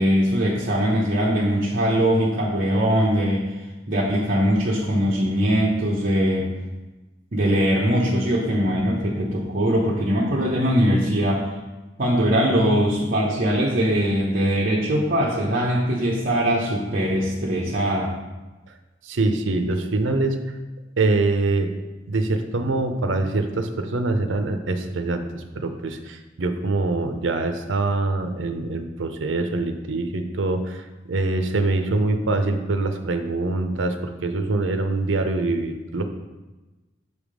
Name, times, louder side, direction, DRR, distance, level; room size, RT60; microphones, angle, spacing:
voice 1, 0.0-3.5 3.9-6.5 7.3-11.5 12.0-18.1, equal, 45° right, -5 dB, 0.8 m, -21 dB
voice 2, 19.0-20.4 21.0-21.7 22.1-36.0, right 2 dB, 75° right, 7 dB, 0.6 m, -24 dB
6.5 x 3.5 x 4.9 m, 1.2 s
head